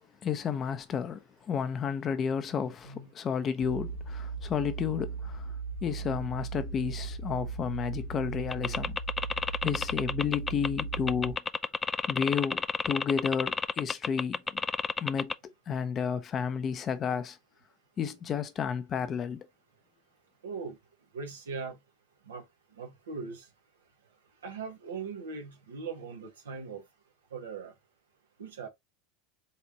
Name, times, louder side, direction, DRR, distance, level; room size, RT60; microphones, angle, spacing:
voice 1, 0.2-5.5 5.8-9.0 9.6-11.4 12.1-14.6 15.0-15.3 15.7-17.4 18.0-19.5, left 7 dB, 35° left, 0.7 m, -32 dB
voice 2, 2.5-3.1 20.4-20.8 21.1-21.8 22.3-22.4 22.8-23.5 24.4-26.8 27.3-27.7 28.4-28.7, right 5 dB, 90° right, 1.5 m, -40 dB
sound 1, 3.6-11.3, right 4 dB, 80° left, 0.6 m, -37 dB
sound 2, 8.5-15.3, left 4 dB, 20° left, 0.3 m, -30 dB
4.3 x 3.4 x 2.8 m
hypercardioid pair, 90°, 0 cm